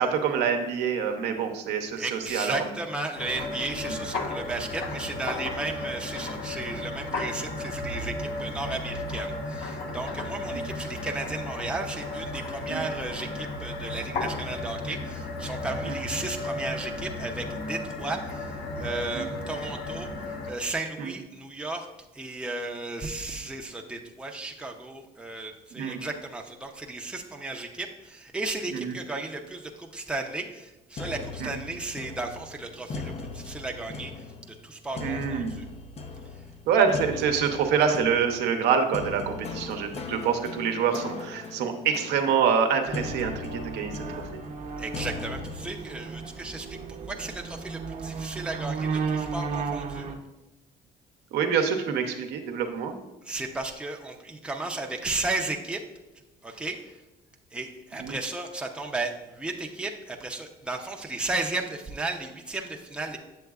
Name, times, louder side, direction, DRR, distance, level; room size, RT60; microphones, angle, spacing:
voice 1, 0.0-2.6 3.9-4.0 10.5-10.6 12.7-12.9 15.8-16.0 19.1-19.3 21.0-21.1 25.7-26.0 28.7-29.0 31.4-31.5 35.0-35.5 36.7-44.0 44.3-44.4 51.3-52.9 58.0-58.2, right 6 dB, 85° right, 5 dB, 0.8 m, -26 dB
voice 2, 2.0-20.1 20.5-21.9 22.1-35.6 44.8-46.8 47.1-50.1 53.2-55.8 56.4-57.0 57.5-63.2, right 2 dB, 5° right, 1 dB, 0.6 m, -34 dB
sound 1, 3.2-20.5, left 2 dB, 80° left, 1.0 m, -34 dB
sound 2, 31.0-45.7, left 4 dB, 40° left, 0.6 m, -39 dB
sound 3, 42.9-50.2, right 5 dB, 45° right, 0.8 m, -34 dB
7.8 x 7.0 x 2.4 m, 0.99 s
cardioid pair, 110°, 17 cm